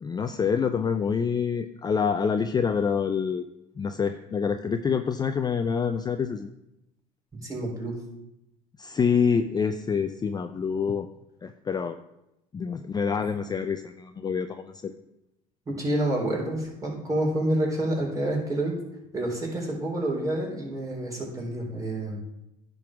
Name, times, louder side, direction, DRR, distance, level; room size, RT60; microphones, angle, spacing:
voice 1, 0.0-3.4 3.8-6.5 8.8-11.1 11.4-12.0 12.5-14.9, left 6 dB, 25° left, 8 dB, 0.5 m, -26 dB
voice 2, 7.4-8.0 15.7-18.8 19.1-22.2, right 1 dB, 20° right, -3 dB, 3.7 m, -28 dB
10.5 x 3.9 x 6.1 m, 0.86 s
supercardioid pair, 90°, 17 cm